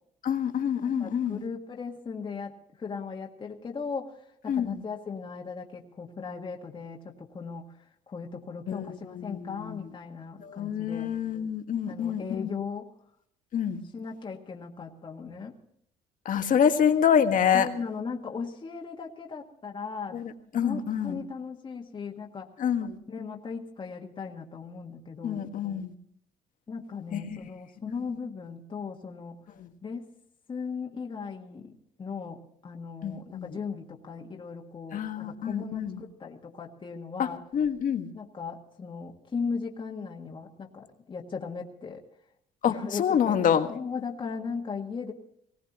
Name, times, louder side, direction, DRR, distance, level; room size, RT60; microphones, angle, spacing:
voice 1, 0.2-1.4 4.5-4.8 8.7-9.9 10.4-12.5 13.5-13.8 16.2-17.7 20.1-21.2 22.6-23.0 25.2-25.9 27.1-27.4 29.6-29.7 33.0-33.5 34.9-36.0 37.2-38.1 42.6-43.7, left 8 dB, 50° left, 7 dB, 1.6 m, -27 dB
voice 2, 1.0-7.7 8.1-11.1 11.9-12.9 13.9-15.6 17.5-20.2 20.5-22.5 23.1-25.5 26.7-29.4 29.8-30.1 30.5-37.4 38.1-42.0 42.6-43.3 43.7-45.1, left 5 dB, 30° left, 0 dB, 1.7 m, -37 dB
20.0 x 17.5 x 3.0 m, 0.72 s
cardioid pair, 110°, 17 cm